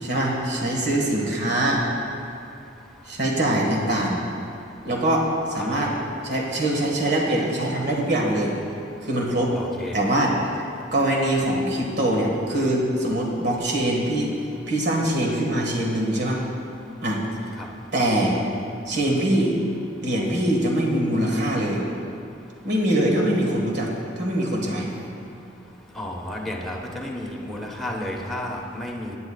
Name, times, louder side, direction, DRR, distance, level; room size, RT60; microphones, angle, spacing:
voice 1, 0.0-1.8 3.0-4.2 4.8-6.0 6.2-8.6 9.0-9.5 9.9-10.4 10.9-14.3 14.7-16.4 17.0-17.2 17.9-18.4 18.9-19.6 20.0-21.8 22.6-23.9 24.2-24.9, right 1 dB, 60° right, -1 dB, 1.7 m, -23 dB
voice 2, 9.5-10.1 17.6-17.7 25.9-29.2, left 1 dB, ahead, -3 dB, 1.2 m, -32 dB
17.0 x 9.5 x 2.4 m, 2.6 s
head